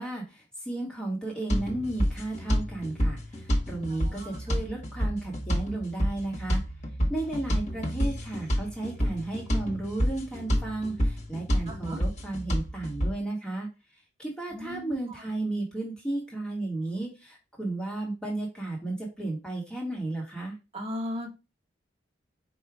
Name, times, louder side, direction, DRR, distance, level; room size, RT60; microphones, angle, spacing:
voice 1, 0.0-6.6 7.1-13.7 14.2-20.6, right 2 dB, 5° left, -3 dB, 1.2 m, -34 dB
sound 1, 1.5-13.1, equal, 40° left, 1.1 m, -29 dB
voice 2, 3.9-4.4 11.7-12.0 14.5-15.0 20.7-21.3, left 1 dB, 30° right, -1 dB, 1.4 m, -37 dB
4.8 x 2.3 x 4.6 m, 0.27 s
head